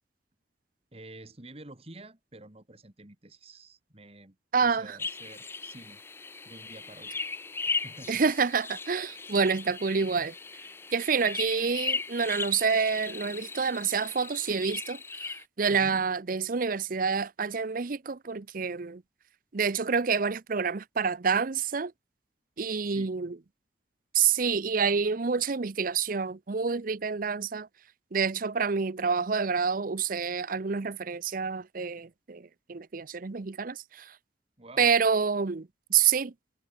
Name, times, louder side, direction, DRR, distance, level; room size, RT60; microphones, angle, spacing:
voice 1, 0.9-4.4 4.6-6.0 6.4-7.2 7.7-8.2 15.7-16.0 22.8-23.1 34.6-34.9, right 2 dB, 35° right, 2.3 m, -49 dB
voice 2, 4.5-5.0 8.1-10.3 10.9-19.0 19.5-21.9 22.6-23.4 24.1-27.7 28.1-34.1 34.8-36.3, right 5 dB, 50° right, 0.7 m, -28 dB
sound 1, 5.0-15.4, left 4 dB, 15° left, 0.3 m, -37 dB
head